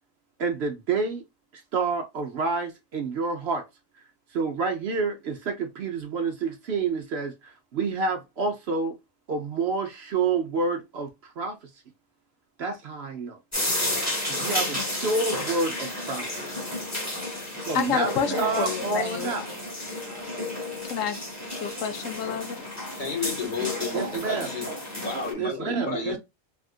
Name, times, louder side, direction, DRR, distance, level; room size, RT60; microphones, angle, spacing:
voice 1, 0.4-1.2 1.5-3.6 4.3-9.0 9.3-11.6 12.6-13.4 14.3-16.6 17.7-19.6 23.9-24.5 25.4-26.2, right 4 dB, 60° right, 0.8 m, -28 dB
sound 1, 13.5-25.3, left 1 dB, 15° left, 1.1 m, -32 dB
voice 2, 17.7-19.3 20.8-21.2 21.5-22.6, left 7 dB, 75° left, 1.0 m, -29 dB
voice 3, 22.9-26.2, left 5 dB, 40° left, 1.3 m, -32 dB
3.4 x 2.4 x 2.3 m
omnidirectional pair, 1.4 m